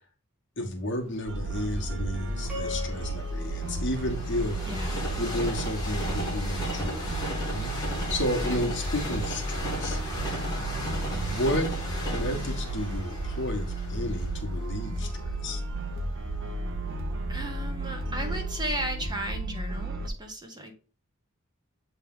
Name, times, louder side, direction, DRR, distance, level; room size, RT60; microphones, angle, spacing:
voice 1, 0.6-4.6 5.2-7.8 8.1-10.0 11.1-11.7 12.1-15.6, left 1 dB, 55° left, 3 dB, 1.4 m, -32 dB
Train, 1.1-17.1 17.7-17.8, equal, 20° left, 2.0 m, -37 dB
sound 1, 1.3-20.1, right 1 dB, 60° right, 0.9 m, -33 dB
sound 2, 2.5-4.9, left 4 dB, 5° right, 2.2 m, -41 dB
voice 2, 4.6-5.0 8.4-8.6 17.3-20.7, right 1 dB, 20° right, 4 dB, 1.1 m, -35 dB
7.6 x 3.4 x 3.7 m, 0.36 s
head